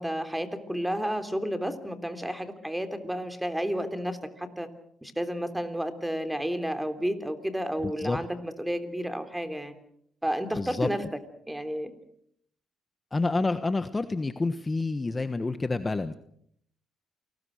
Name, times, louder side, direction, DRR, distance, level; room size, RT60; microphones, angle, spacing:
voice 1, 0.0-4.7 5.0-9.7 10.2-11.0 11.4-11.9, equal, 5° right, 9 dB, 3.3 m, -31 dB
voice 2, 7.8-8.2 10.5-10.9 13.1-16.1, left 3 dB, 20° left, 10 dB, 1.3 m, -28 dB
28.5 x 19.5 x 6.5 m, 0.68 s
cardioid pair, 90°, 0 cm